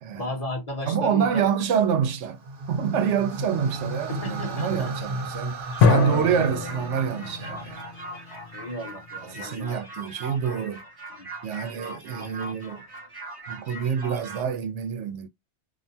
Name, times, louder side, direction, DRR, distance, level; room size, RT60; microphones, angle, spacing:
voice 1, 0.2-1.5 4.1-4.7 8.5-9.8 11.1-11.3, left 1 dB, 35° left, 0.9 m, -34 dB
voice 2, 0.9-2.4 2.7-7.9 9.3-10.8 11.4-12.8 13.5-15.3, right 7 dB, 85° right, 0.9 m, -27 dB
sound 1, 2.3-8.6, right 2 dB, 55° right, 1.0 m, -35 dB
sound 2, 5.7-14.4, right 2 dB, 25° right, 0.8 m, -40 dB
sound 3, 5.8-9.3, left 6 dB, 90° left, 1.0 m, -25 dB
2.5 x 2.2 x 2.6 m
omnidirectional pair, 1.2 m